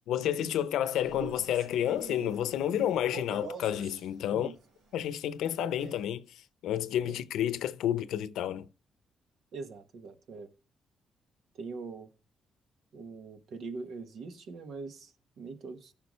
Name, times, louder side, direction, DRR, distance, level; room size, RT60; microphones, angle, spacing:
voice 1, 0.1-4.5 4.9-6.3 6.6-8.7, left 11 dB, 85° left, 0.7 m, -30 dB
Male speech man speaking, 0.9-4.1 5.4-6.1, right 3 dB, 90° right, 3.4 m, -44 dB
voice 2, 9.5-10.5 11.5-12.1 12.9-15.9, right 4 dB, 70° right, 1.5 m, -42 dB
15.5 x 5.9 x 3.2 m
cardioid pair, 95°, 0 cm